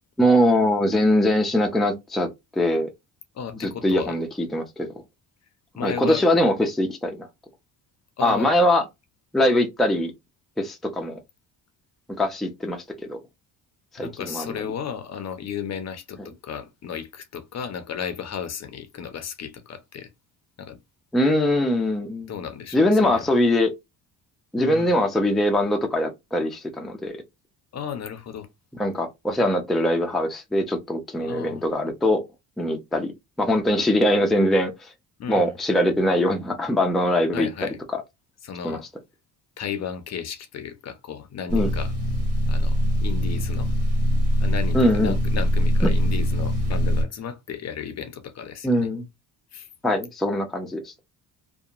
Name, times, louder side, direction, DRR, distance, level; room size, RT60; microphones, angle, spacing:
voice 1, 0.2-2.9 3.6-4.3 4.5-4.9 5.8-7.3 8.2-8.8 9.3-10.1 10.6-11.2 12.2-12.8 13.1-13.2 13.9-14.6 21.1-22.3 22.7-23.7 24.5-27.1 28.8-32.2 32.6-33.1 33.4-34.7 35.3-37.5 38.6-38.8 41.5-41.7 44.7-45.2 48.6-49.0 49.8-50.9, left 1 dB, ahead, 0.5 m, -22 dB
voice 2, 3.3-4.2 5.8-6.3 8.2-8.6 14.0-20.1 20.6-20.8 22.3-23.3 24.6-24.9 27.7-28.5 31.2-31.6 35.2-35.5 37.3-37.8 38.4-38.8 39.6-41.9 42.5-43.7 44.4-48.9 49.5-49.7, left 7 dB, 45° left, 0.6 m, -34 dB
sound 1, 41.5-47.0, equal, 85° right, 1.3 m, -22 dB
2.8 x 2.2 x 2.4 m
cardioid pair, 115°, 39 cm